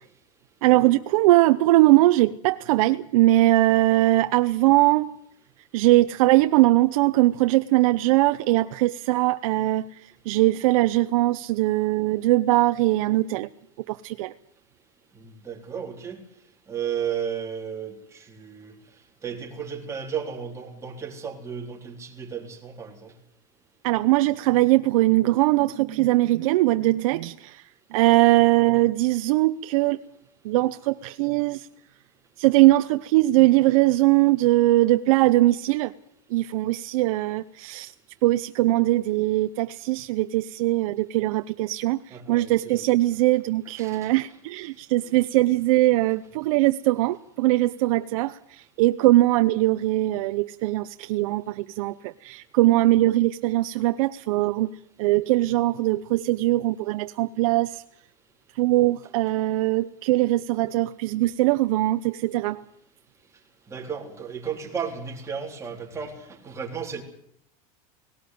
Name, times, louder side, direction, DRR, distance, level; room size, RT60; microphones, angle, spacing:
voice 1, 0.6-5.1 5.7-9.9 10.3-13.5 13.9-14.3 23.8-27.6 27.9-30.0 30.4-31.7 32.4-35.9 36.3-37.9 38.2-54.7 55.0-57.8 58.6-62.6, right 17 dB, 70° right, 10 dB, 0.8 m, -21 dB
voice 2, 15.2-16.2 16.7-18.7 19.2-23.1 42.1-43.0 43.8-44.1 59.0-59.1 63.7-67.0, right 7 dB, 15° right, 1 dB, 3.9 m, -34 dB
18.5 x 18.0 x 9.4 m, 0.70 s
supercardioid pair, 150°, 18 cm